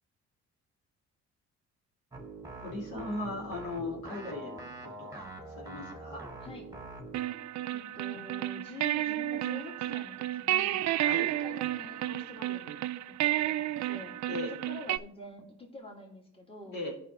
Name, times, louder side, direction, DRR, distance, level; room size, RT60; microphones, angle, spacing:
sound 1, 2.1-7.2, right 2 dB, 10° right, 1.4 m, -44 dB
voice 1, 2.6-6.2 11.0-11.3 14.3-14.5 16.7-16.9, left 2 dB, 75° left, -2 dB, 2.5 m, -38 dB
Guitar Jam in Ableton Live, 7.1-15.0, right 14 dB, 65° right, 0.4 m, -31 dB
voice 2, 7.7-10.8 11.4-12.8 13.2-14.1 14.6-16.8, left 2 dB, 20° left, 0 dB, 2.0 m, -46 dB
16.0 x 5.6 x 3.0 m, 0.72 s
cardioid pair, 90°, 30 cm